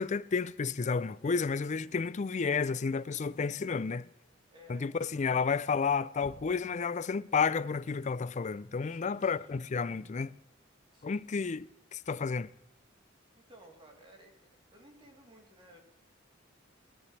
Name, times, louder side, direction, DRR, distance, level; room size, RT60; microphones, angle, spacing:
voice 1, 0.0-4.1 4.7-10.3 11.0-12.5, left 5 dB, 35° left, 0.4 m, -31 dB
voice 2, 4.5-5.7 8.9-9.5 10.9-11.2 13.3-15.8, equal, 25° right, 3.2 m, -57 dB
Knock, 6.2-6.9, left 1 dB, 75° left, 3.3 m, -53 dB
20.5 x 13.5 x 3.3 m
head